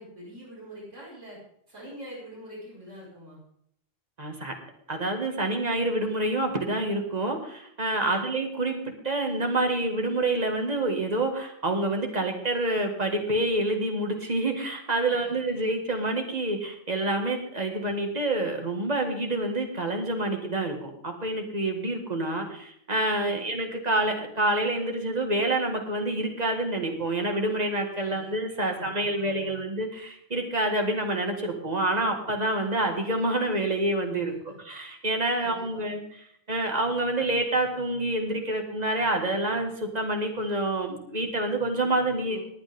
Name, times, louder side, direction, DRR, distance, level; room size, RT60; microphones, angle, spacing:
voice 1, 0.0-1.4 1.7-3.4 8.0-8.3 15.1-15.3 23.2-23.5 28.0-29.6 34.4-34.5 35.4-35.9 42.2-42.4, equal, 80° right, -6 dB, 5.9 m, -45 dB
voice 2, 4.2-4.5 4.9-34.3 34.7-36.0 36.5-42.4, right 2 dB, 35° right, 3 dB, 2.0 m, -27 dB
20.0 x 8.9 x 3.7 m, 0.70 s
omnidirectional pair, 1.2 m